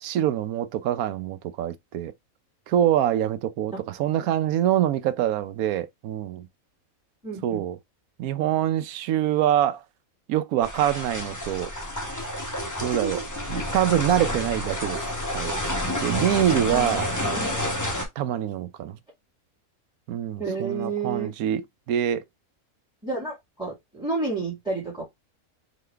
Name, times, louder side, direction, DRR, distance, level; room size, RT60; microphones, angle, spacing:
voice 1, 0.0-2.1 2.7-6.5 7.4-7.8 8.2-9.8 10.3-11.7 12.8-13.2 13.5-15.0 15.3-15.5 16.0-17.1 18.2-19.0 20.1-22.2, right 11 dB, 90° right, 1.1 m, -25 dB
voice 2, 7.2-7.6 13.0-13.2 16.7-17.7 20.4-21.3 23.0-25.0, right 3 dB, 5° right, 1.9 m, -31 dB
sound 1, 10.6-18.0, left 1 dB, 15° left, 0.8 m, -29 dB
4.0 x 3.0 x 3.3 m
omnidirectional pair, 1.5 m